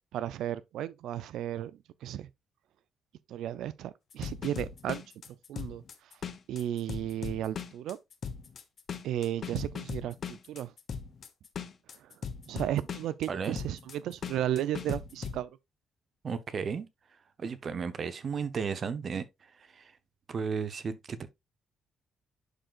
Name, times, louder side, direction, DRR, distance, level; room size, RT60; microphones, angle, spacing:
voice 1, 0.0-2.3 3.3-5.0 5.5-6.2 6.5-8.0 9.0-10.7 11.9-12.2 12.5-15.5, right 11 dB, 80° right, 0.4 m, -34 dB
sound 1, 4.1-15.4, left 6 dB, 50° left, 1.0 m, -39 dB
voice 2, 13.3-13.6 16.2-16.9 17.4-19.3 19.6-19.9 20.3-21.3, right 6 dB, 50° right, 0.8 m, -34 dB
11.0 x 3.9 x 2.4 m
cardioid pair, 90°, 0 cm